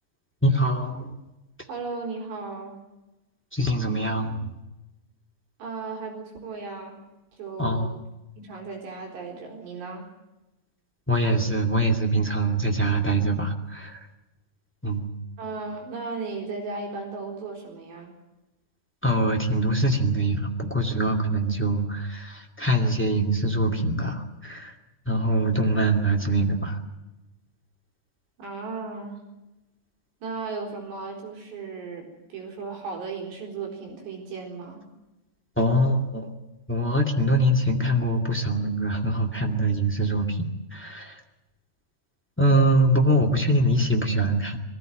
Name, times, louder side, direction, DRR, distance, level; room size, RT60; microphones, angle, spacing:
voice 1, 0.4-1.1 3.5-4.4 7.6-7.9 11.1-14.0 14.8-15.0 19.0-24.7 25.0-26.8 35.6-36.3 36.7-41.1 42.4-44.6, right 1 dB, 5° left, 2 dB, 0.9 m, -23 dB
voice 2, 1.7-2.8 5.6-7.0 7.3-7.9 8.4-10.1 15.4-18.1 28.4-29.2 30.2-34.8, right 4 dB, 75° right, 1 dB, 6.1 m, -35 dB
23.5 x 15.5 x 9.3 m, 1.0 s
omnidirectional pair, 5.0 m